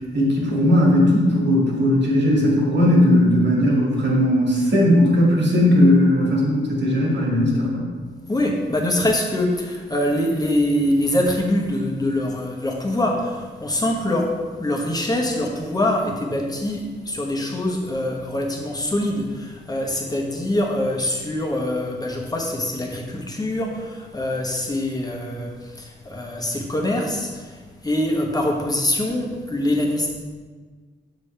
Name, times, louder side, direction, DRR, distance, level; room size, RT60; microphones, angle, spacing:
voice 1, 0.1-7.9, left 1 dB, 70° right, -3 dB, 2.1 m, -17 dB
voice 2, 8.3-30.1, left 1 dB, 20° left, 0 dB, 1.2 m, -24 dB
7.1 x 6.1 x 3.3 m, 1.5 s
cardioid pair, 90°, 19 cm